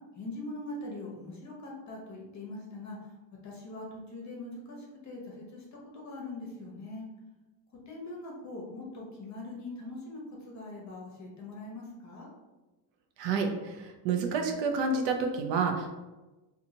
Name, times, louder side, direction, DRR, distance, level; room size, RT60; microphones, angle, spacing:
voice 1, 0.2-3.1 3.4-7.1 7.9-12.3, left 2 dB, 35° left, -2 dB, 0.9 m, -42 dB
voice 2, 13.2-15.9, right 4 dB, 70° right, 4 dB, 0.6 m, -29 dB
2.7 x 2.4 x 2.8 m, 1.1 s
cardioid pair, 105°, 46 cm